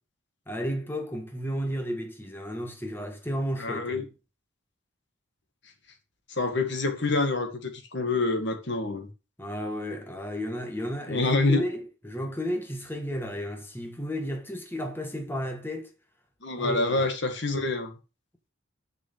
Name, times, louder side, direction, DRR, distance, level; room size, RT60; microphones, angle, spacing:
voice 1, 0.5-4.1 9.4-15.9 16.6-17.1, equal, 10° left, 1.6 m, -33 dB
voice 2, 3.6-4.0 6.3-9.1 11.1-11.7 16.4-17.9, left 3 dB, 60° left, 1.9 m, -27 dB
6.3 x 6.0 x 7.1 m
head